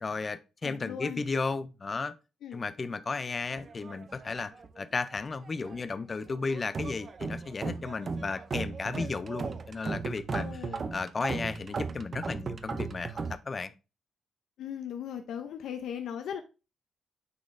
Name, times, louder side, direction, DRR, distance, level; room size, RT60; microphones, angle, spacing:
voice 1, 0.0-2.1 2.5-10.5 10.9-13.7, left 4 dB, 30° left, 0.4 m, -34 dB
voice 2, 0.6-1.2 2.4-2.6 10.4-10.9 14.6-16.4, left 8 dB, 80° left, 0.5 m, -38 dB
sound 1, 3.5-4.8 5.1-5.9 6.3-13.4, right 4 dB, 35° right, 0.4 m, -37 dB
9.4 x 4.1 x 2.5 m
cardioid pair, 135°, 0 cm